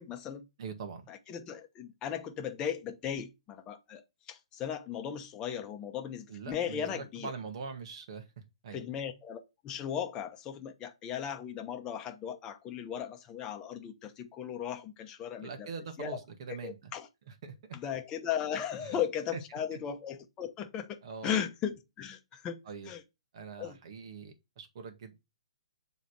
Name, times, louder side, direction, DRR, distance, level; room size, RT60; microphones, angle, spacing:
voice 1, 0.0-0.4 1.1-4.0 4.3-7.3 8.7-15.7 16.0-16.2 16.6-17.1 17.7-21.0 21.2-22.6 22.9-23.0 23.6-23.8, left 9 dB, 20° left, 0.9 m, -37 dB
voice 2, 0.6-1.1 6.3-8.3 8.6-8.8 15.4-16.9 17.3-17.5 18.8-19.0 19.3-19.4 19.7-19.8 21.0-21.4 22.7-22.9 23.3-25.2, right 5 dB, 55° right, 1.8 m, -43 dB
7.1 x 3.6 x 4.3 m
hypercardioid pair, 135°, 3 cm